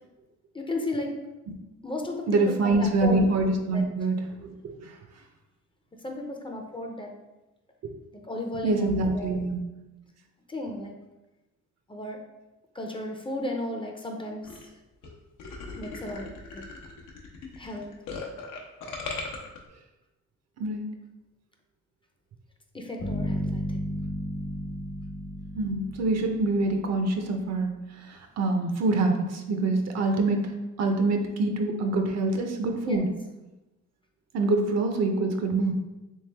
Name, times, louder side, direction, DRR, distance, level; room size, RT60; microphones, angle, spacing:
voice 1, 0.5-1.1 1.8-3.2 3.7-3.8 6.0-7.1 8.3-9.4 10.5-11.0 11.9-12.2 12.7-14.5 15.8-16.6 17.6-17.9 22.7-23.9 32.8-33.0, left 1 dB, 15° left, 2 dB, 0.5 m, -34 dB
voice 2, 2.3-4.2 4.6-4.8 8.6-9.6 20.6-20.8 25.5-27.7 28.1-30.5 30.8-33.1 34.3-35.7, right 2 dB, 60° right, 4 dB, 0.7 m, -25 dB
sound 1, 14.4-14.7 15.0-15.1 15.4-19.6, left 4 dB, 90° left, 0.8 m, -38 dB
sound 2, 23.0-27.0, equal, 65° left, 1.0 m, -33 dB
3.4 x 3.2 x 3.3 m, 1.0 s
cardioid pair, 90°, 30 cm